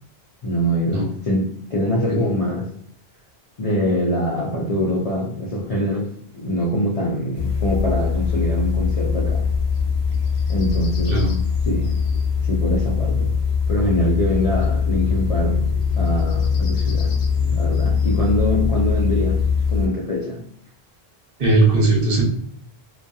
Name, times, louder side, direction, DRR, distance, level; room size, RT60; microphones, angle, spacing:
voice 1, 0.4-2.7 3.6-9.5 10.5-11.2 11.7-12.0 12.4-13.4 13.7-15.7 16.0-17.2 17.5-19.4 19.7-20.5, equal, 55° left, -3 dB, 0.4 m, -24 dB
sound 1, 7.3-19.9, left 6 dB, 85° left, 0.8 m, -21 dB
voice 2, 11.1-11.4 21.4-22.2, right 2 dB, 65° right, -1 dB, 0.9 m, -18 dB
2.7 x 2.2 x 2.2 m, 0.63 s
omnidirectional pair, 1.0 m